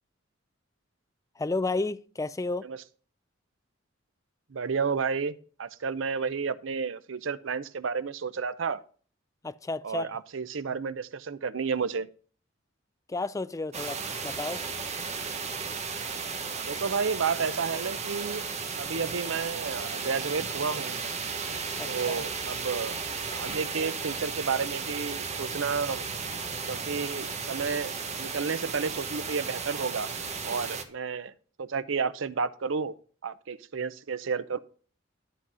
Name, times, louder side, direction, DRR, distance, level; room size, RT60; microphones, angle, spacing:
voice 1, 1.4-2.7 9.4-10.1 13.1-14.6 21.8-21.9, left 3 dB, 15° left, 0.4 m, -32 dB
voice 2, 4.5-8.8 9.8-12.1 16.6-18.5 18.8-21.0 21.9-23.0 23.3-26.0 26.7-30.1 30.4-31.3 31.6-32.9 33.2-34.6, right 5 dB, 75° right, 0.6 m, -31 dB
sound 1, 13.7-30.8, right 5 dB, 35° right, 1.2 m, -34 dB
12.0 x 4.1 x 6.1 m
head